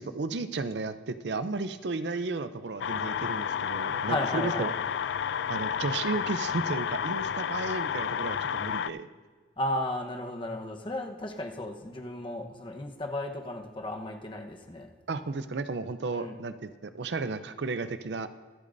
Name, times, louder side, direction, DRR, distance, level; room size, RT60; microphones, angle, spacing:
voice 1, 0.0-4.7 5.5-9.1 15.1-18.3, right 3 dB, 75° right, 11 dB, 0.6 m, -33 dB
sound 1, 2.8-8.9, left 8 dB, 80° left, 0.3 m, -31 dB
voice 2, 4.0-4.7 9.6-14.9 16.1-16.4, left 1 dB, 30° left, 3 dB, 1.0 m, -34 dB
24.5 x 8.5 x 2.6 m, 1.5 s
head